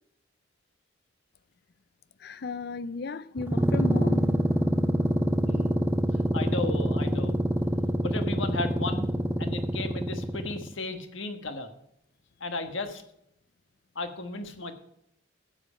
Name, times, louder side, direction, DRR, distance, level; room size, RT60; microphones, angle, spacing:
voice 1, 2.2-4.3, left 4 dB, 50° left, 0.5 m, -35 dB
sound 1, 3.4-10.7, equal, 10° right, 0.4 m, -26 dB
voice 2, 5.4-5.9 6.3-7.3 8.0-9.1 9.4-11.7 12.4-13.0 13.9-14.7, left 3 dB, 70° left, 1.4 m, -34 dB
12.0 x 7.8 x 5.0 m
head